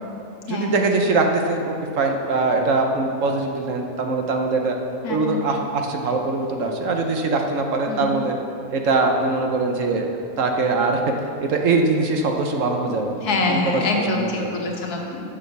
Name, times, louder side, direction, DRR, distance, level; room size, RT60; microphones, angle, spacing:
voice 1, 0.5-4.8 5.1-8.3 8.7-11.0 11.4-13.2 13.5-13.8 14.1-14.6, right 3 dB, 60° right, 3 dB, 1.1 m, -22 dB
voice 2, 5.0-5.4 7.9-8.1 13.2-15.2, left 3 dB, 85° left, 0 dB, 1.7 m, -25 dB
7.3 x 6.2 x 6.8 m, 2.7 s
omnidirectional pair, 1.6 m